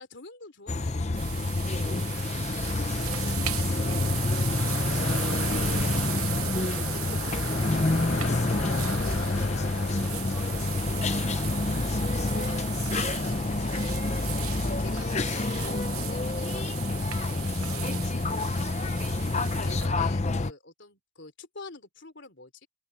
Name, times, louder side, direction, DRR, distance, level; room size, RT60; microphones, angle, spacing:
voice 1, 0.0-2.2 2.9-3.8 5.5-5.8 7.1-7.2 7.9-8.2 12.1-12.8 13.2-14.2 14.6-18.3 19.1-22.7, left 3 dB, 55° left, 3.7 m, -46 dB
sound 1, 0.7-20.5, left 2 dB, 30° left, 0.7 m, -28 dB
sound 2, 1.1-19.9, right 14 dB, 80° right, 0.9 m, -38 dB
sound 3, 2.0-13.4, left 4 dB, 70° left, 1.0 m, -41 dB
voice 2, 6.3-12.5 13.3-13.7 14.0-14.3, equal, 5° right, 4.1 m, -49 dB
head